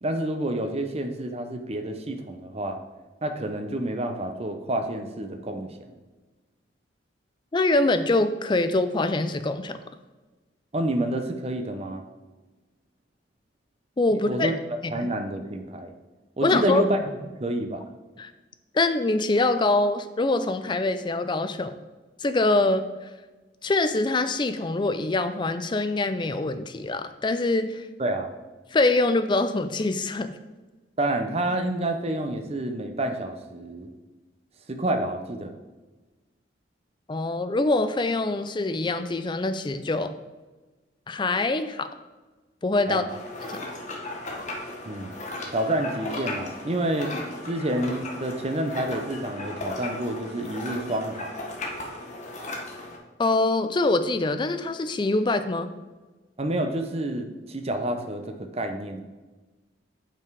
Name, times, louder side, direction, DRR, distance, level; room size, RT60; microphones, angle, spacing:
voice 1, 0.0-2.8 3.2-5.7 10.7-12.0 14.3-14.5 14.9-15.9 16.4-17.1 17.4-17.9 28.0-28.3 31.0-33.9 34.7-35.6 42.9-43.0 44.8-45.2 45.5-47.1 47.4-51.4 56.4-59.1, right 1 dB, 35° right, 6 dB, 0.7 m, -28 dB
voice 2, 7.5-9.8 14.0-14.6 15.0-15.1 16.4-16.8 18.2-18.3 18.7-21.8 22.2-23.1 23.6-27.9 28.7-30.3 37.1-40.1 41.1-41.9 42.6-43.1 43.5-43.6 53.2-55.7, left 2 dB, 25° left, 10 dB, 0.4 m, -24 dB
sound 1, 43.1-53.0, left 2 dB, 40° left, 1.1 m, -36 dB
7.1 x 5.7 x 4.7 m, 1.2 s
head